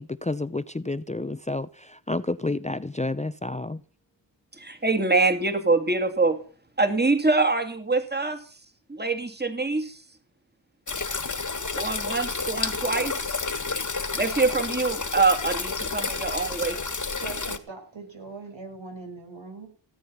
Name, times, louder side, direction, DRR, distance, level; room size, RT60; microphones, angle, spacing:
voice 1, 0.0-3.8, left 2 dB, 15° left, 0.6 m, -30 dB
voice 2, 4.6-6.4 6.8-8.4 8.9-10.0 11.7-13.1 14.2-16.8, right 3 dB, 20° right, 2.5 m, -24 dB
sound 1, 10.9-17.6, left 4 dB, 40° left, 1.7 m, -30 dB
voice 3, 17.2-19.7, right 4 dB, 75° right, 5.6 m, -40 dB
17.0 x 8.9 x 5.7 m
cardioid pair, 40°, 45 cm